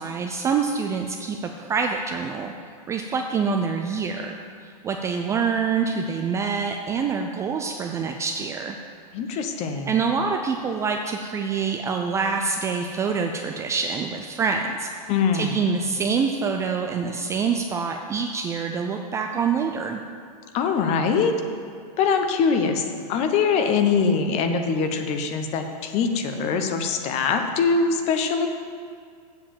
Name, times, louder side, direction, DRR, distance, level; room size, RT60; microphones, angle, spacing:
voice 1, 0.0-2.5 2.9-8.8 9.3-9.4 9.9-14.9 15.3-20.0, right 5 dB, 15° right, 3 dB, 0.3 m, -26 dB
voice 2, 9.1-9.9 15.1-15.6 20.5-21.3 22.0-28.5, left 5 dB, 35° left, 6 dB, 0.9 m, -23 dB
7.7 x 7.0 x 7.4 m, 2.2 s
hypercardioid pair, 140°, 20 cm